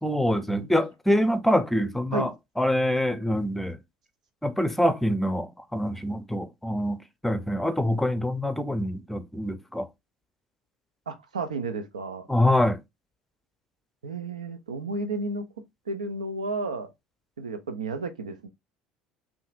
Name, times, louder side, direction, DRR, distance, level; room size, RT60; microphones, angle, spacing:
voice 1, 0.0-3.8 4.4-9.9 12.3-12.8, left 1 dB, 5° left, 0.7 m, -25 dB
voice 2, 11.1-12.3 14.0-15.5 15.9-16.9 17.4-18.5, right 3 dB, 90° right, 0.6 m, -32 dB
5.5 x 2.7 x 2.5 m
hypercardioid pair, 65°, 4 cm